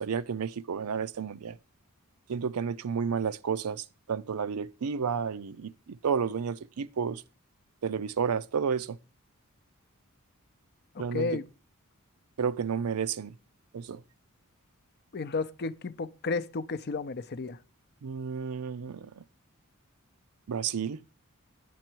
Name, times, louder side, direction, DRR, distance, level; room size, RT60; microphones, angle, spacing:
voice 1, 0.0-1.6 2.3-5.7 6.0-7.2 7.8-9.0 11.0-11.3 12.4-13.3 13.7-14.0 18.0-19.2 20.5-21.0, right 6 dB, 80° right, 0.5 m, -31 dB
voice 2, 10.9-11.5 15.1-17.6, left 3 dB, 50° left, 0.5 m, -33 dB
9.3 x 7.6 x 4.5 m
head